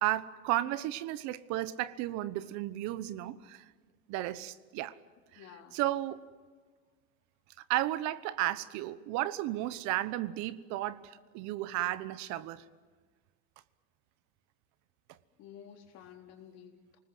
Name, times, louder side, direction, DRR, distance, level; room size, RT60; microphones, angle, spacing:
voice 1, 0.0-3.6 4.1-5.0 5.3-5.5 5.7-6.2 7.7-12.7, right 15 dB, 60° right, 1.1 m, -33 dB
voice 2, 5.3-5.8 15.4-17.0, left 9 dB, 55° left, 4.1 m, -52 dB
28.5 x 19.5 x 7.9 m
supercardioid pair, 130°, 32 cm